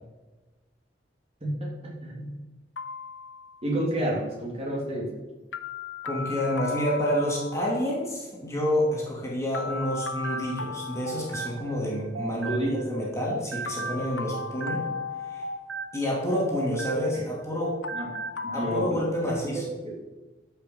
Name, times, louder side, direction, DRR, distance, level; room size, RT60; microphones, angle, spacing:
voice 1, 1.4-2.3 3.6-5.1 12.3-12.8 17.1-17.2 17.9-18.0 18.4-20.0, right 1 dB, 35° right, -3 dB, 3.1 m, -30 dB
sound 1, 2.8-3.9 5.5-7.8 9.5-11.9 13.7-16.0 17.8-18.9, left 5 dB, 75° left, 0.7 m, -37 dB
voice 2, 6.0-14.8 15.2-15.4 15.9-17.8 18.5-19.6, equal, 15° left, -4 dB, 2.8 m, -28 dB
sound 2, 9.7-13.0 13.2-17.3 17.6-18.4, right 5 dB, 85° right, 0.8 m, -37 dB
13.0 x 5.8 x 5.6 m, 1.2 s
head